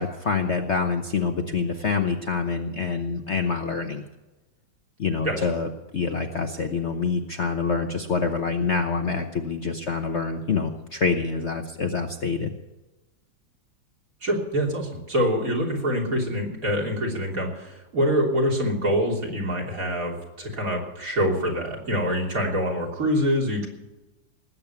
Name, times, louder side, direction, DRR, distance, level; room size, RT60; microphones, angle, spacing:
voice 1, 0.0-4.0 5.0-12.5, left 5 dB, 45° left, 5 dB, 1.1 m, -26 dB
voice 2, 14.2-23.7, equal, 45° right, -1 dB, 3.7 m, -25 dB
19.5 x 8.7 x 7.0 m, 1.1 s
omnidirectional pair, 2.0 m